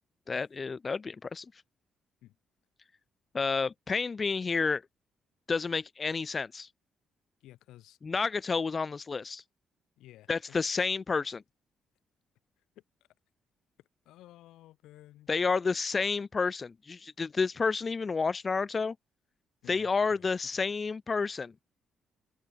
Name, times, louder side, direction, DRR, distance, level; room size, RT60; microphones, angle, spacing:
voice 1, 0.3-1.5 3.3-4.8 5.5-6.7 8.0-9.4 10.3-11.4 15.3-18.9 19.7-21.5, left 4 dB, 35° left, 0.7 m, -30 dB
voice 2, 7.4-8.0 10.0-10.9 12.7-12.8 14.0-15.3 19.6-20.2, left 15 dB, 90° left, 4.9 m, -54 dB
open air
cardioid pair, 90°, 0 cm